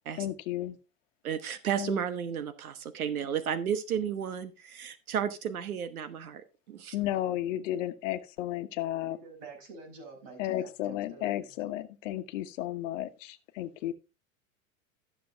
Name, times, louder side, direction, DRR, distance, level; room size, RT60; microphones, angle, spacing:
voice 1, 0.2-0.8 1.8-2.0 6.9-9.2 10.4-13.9, left 13 dB, 60° left, 1.2 m, -33 dB
voice 2, 1.2-6.9, right 8 dB, 85° right, 1.2 m, -33 dB
voice 3, 9.1-11.5, right 3 dB, 60° right, 5.9 m, -48 dB
13.0 x 6.9 x 3.4 m
hypercardioid pair, 105°, 42 cm